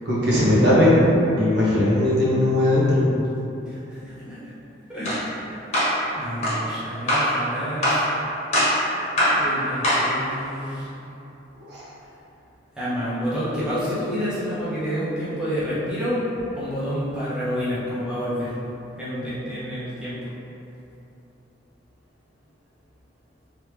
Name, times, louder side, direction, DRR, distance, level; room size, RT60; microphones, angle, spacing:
voice 1, 0.1-1.1 1.4-3.2 11.7-11.8, left 1 dB, 60° right, -9 dB, 1.0 m, -18 dB
voice 2, 3.6-4.5 4.9-5.5 6.1-8.1 9.4-10.9 12.7-16.3 16.5-18.5 19.0-20.2, equal, 5° right, -12 dB, 0.7 m, -29 dB
sound 1, 5.0-5.2 5.7-6.0 6.4-6.6 7.1-7.3 7.8-8.1 8.5-8.8 9.2-9.4 9.8-10.1, equal, 35° left, 1.2 m, -21 dB
3.4 x 3.0 x 3.2 m, 2.9 s
head